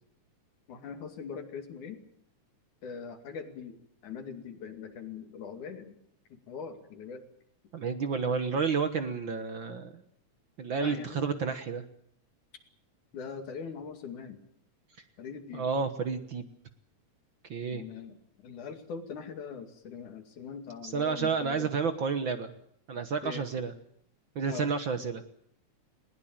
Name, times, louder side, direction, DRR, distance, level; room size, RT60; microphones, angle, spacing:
voice 1, 0.7-2.0 2.8-6.0 6.3-7.2 10.7-11.3 13.1-14.4 15.2-15.6 17.7-21.7 23.2-23.4 24.5-24.7, left 6 dB, 85° left, 6 dB, 3.9 m, -42 dB
voice 2, 7.7-10.0 10.6-11.8 15.5-16.5 17.5-17.8 20.8-22.5 22.9-23.7 24.3-25.2, right 5 dB, 55° right, 9 dB, 1.6 m, -30 dB
20.5 x 20.0 x 8.9 m, 0.69 s
omnidirectional pair, 3.4 m